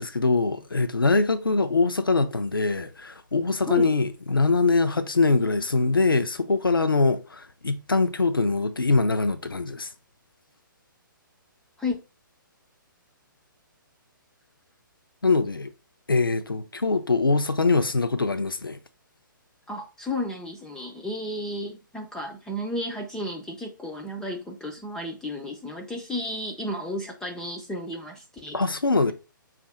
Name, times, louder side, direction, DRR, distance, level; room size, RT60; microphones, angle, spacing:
voice 1, 0.0-9.9 15.2-15.7 16.1-18.8 28.5-29.1, left 3 dB, 85° left, 0.5 m, -23 dB
voice 2, 19.7-28.6, left 1 dB, 5° left, 0.4 m, -33 dB
5.2 x 2.5 x 3.9 m
figure-of-eight pair, 130°, 11 cm